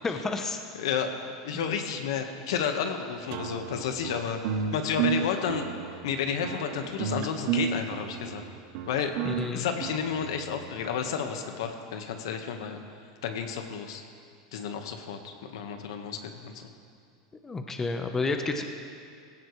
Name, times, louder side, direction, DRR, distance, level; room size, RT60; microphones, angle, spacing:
voice 1, 0.0-0.6 1.5-1.6 9.2-9.7 17.4-18.6, left 3 dB, 15° left, 5 dB, 0.9 m, -30 dB
voice 2, 0.7-1.1 1.4-4.4 4.7-5.7 6.0-8.4 8.9-9.1 9.5-12.8 13.2-14.0 14.5-16.7, left 7 dB, 80° left, 5 dB, 1.4 m, -31 dB
sound 1, 3.3-10.7, right 8 dB, 60° right, 0.9 m, -32 dB
17.5 x 16.5 x 3.3 m, 2.3 s
supercardioid pair, 130°, 3 cm